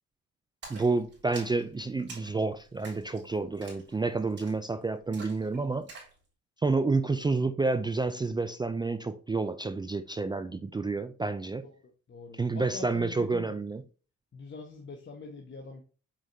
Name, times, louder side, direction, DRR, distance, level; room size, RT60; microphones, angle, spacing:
Splash splatter, 0.6-6.2, right 3 dB, 50° right, 3.5 m, -49 dB
voice 1, 0.7-5.9 6.6-11.7 12.4-13.8, right 3 dB, 15° right, 0.4 m, -29 dB
voice 2, 12.1-13.6 14.3-15.8, left 4 dB, 40° left, 1.3 m, -44 dB
7.5 x 5.0 x 2.7 m
cardioid pair, 90°, 30 cm